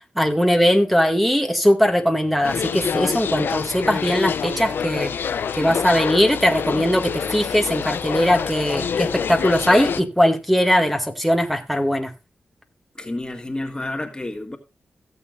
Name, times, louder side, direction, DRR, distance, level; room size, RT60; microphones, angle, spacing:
voice 1, 0.2-5.2 5.6-12.1, equal, ahead, 1.9 m, -20 dB
sound 1, 2.4-10.0, left 7 dB, 80° left, 0.6 m, -26 dB
voice 2, 13.0-14.6, left 2 dB, 25° left, 1.7 m, -30 dB
17.0 x 7.1 x 2.5 m
cardioid pair, 60°, 4 cm